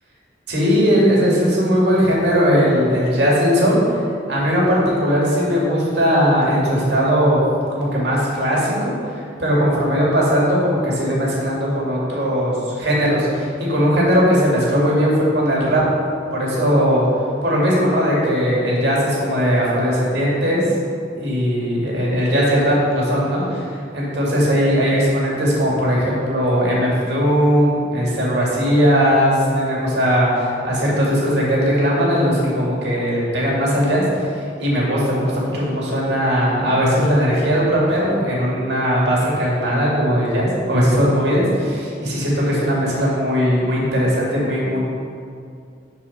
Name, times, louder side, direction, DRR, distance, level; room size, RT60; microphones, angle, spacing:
voice 1, 0.5-3.9 4.3-7.4 7.7-15.8 16.3-17.0 17.4-20.9 21.2-23.7 23.9-34.3 34.6-44.8, equal, 65° right, -5 dB, 2.2 m, -18 dB
11.5 x 4.6 x 4.2 m, 2.3 s
head